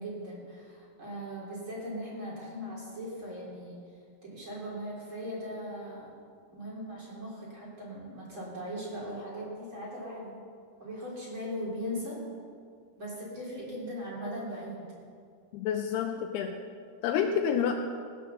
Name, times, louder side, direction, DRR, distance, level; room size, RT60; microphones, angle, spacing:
voice 1, 0.0-3.8 4.2-6.1 6.5-10.4 10.8-12.2 13.0-14.9, equal, 30° right, -5 dB, 3.5 m, -39 dB
voice 2, 15.5-16.6 17.0-17.7, left 8 dB, 80° left, 5 dB, 2.5 m, -28 dB
17.0 x 9.7 x 6.7 m, 2.2 s
omnidirectional pair, 5.1 m